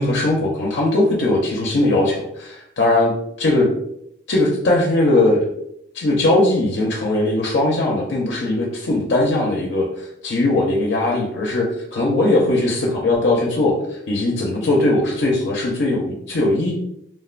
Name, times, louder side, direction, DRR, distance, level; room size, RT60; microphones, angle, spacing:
voice 1, 0.0-3.1 3.4-3.7 4.3-5.5 5.9-16.7, left 2 dB, 65° left, -2 dB, 0.5 m, -19 dB
3.4 x 2.1 x 2.4 m, 0.75 s
head